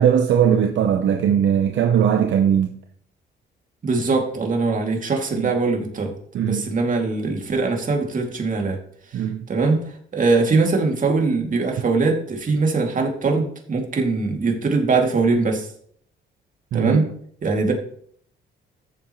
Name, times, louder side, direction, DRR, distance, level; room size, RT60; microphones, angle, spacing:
voice 1, 0.0-2.8 5.4-5.5 6.3-6.6 9.1-9.4 16.7-17.0, right 8 dB, 70° right, 0.8 m, -19 dB
voice 2, 3.8-8.8 9.1-9.2 9.5-15.7 16.7-17.1 17.4-17.7, right 3 dB, 40° right, 2.5 m, -22 dB
14.0 x 7.5 x 3.1 m
cardioid pair, 90°, 20 cm